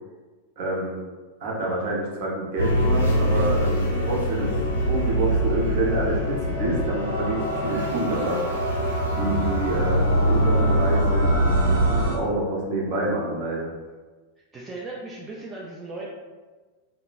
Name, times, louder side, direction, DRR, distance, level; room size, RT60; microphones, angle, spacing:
voice 1, 0.6-1.0 1.4-4.5 4.8-8.6 9.1-13.7, right 2 dB, 50° right, -3 dB, 0.7 m, -27 dB
sound 1, 2.6-12.1, equal, 65° left, 0.5 m, -23 dB
sound 2, 7.0-12.2, right 1 dB, 70° right, 1.1 m, -35 dB
voice 2, 14.5-16.1, right 2 dB, 20° right, -4 dB, 0.3 m, -37 dB
2.9 x 2.1 x 2.3 m, 1.3 s
figure-of-eight pair, 90°, 0 cm